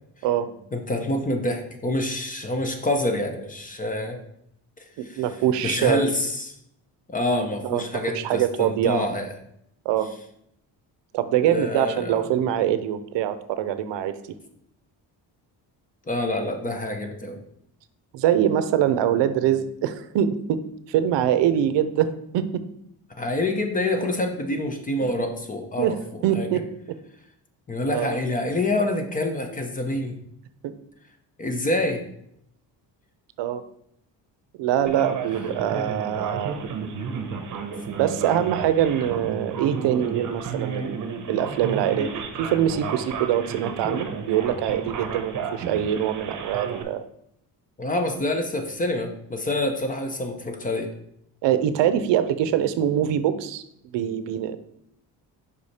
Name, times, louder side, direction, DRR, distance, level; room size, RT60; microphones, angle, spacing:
voice 1, 0.7-4.2 4.8-5.2 5.6-6.5 7.1-9.3 11.4-12.2 16.1-17.4 23.2-26.5 27.7-30.2 31.4-32.0 47.8-50.9, left 1 dB, 20° left, 5 dB, 0.7 m, -27 dB
voice 2, 5.0-6.1 7.6-9.1 9.8-10.1 11.1-14.1 18.1-20.6 20.9-22.6 25.8-25.9 26.2-26.7 27.9-28.2 30.6-30.7 33.4-33.6 34.6-36.7 38.0-47.0 51.4-53.6 53.9-54.6, right 10 dB, 80° right, 12 dB, 0.6 m, -24 dB
Male speech man speaking, 34.9-46.8, right 6 dB, 45° right, 0.9 m, -32 dB
5.5 x 4.9 x 4.2 m, 0.74 s
cardioid pair, 140°, 42 cm